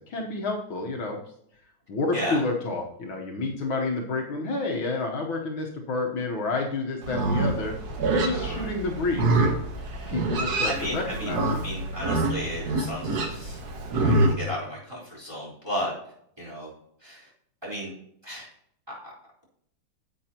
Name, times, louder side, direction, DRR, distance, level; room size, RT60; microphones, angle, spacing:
voice 1, 0.1-1.2 1.9-7.8 8.1-9.3 10.1-11.6, left 3 dB, 65° left, 0 dB, 1.8 m, -29 dB
Livestock farm animals working animals, 7.0-14.3, right 2 dB, 55° right, 1.4 m, -26 dB
voice 2, 10.6-11.4 11.6-13.6 13.9-15.9 16.4-16.7 17.0-17.3 17.6-17.9 18.2-18.5 18.9-19.1, equal, 10° right, -7 dB, 3.9 m, -34 dB
10.5 x 8.0 x 2.9 m, 0.70 s
omnidirectional pair, 2.4 m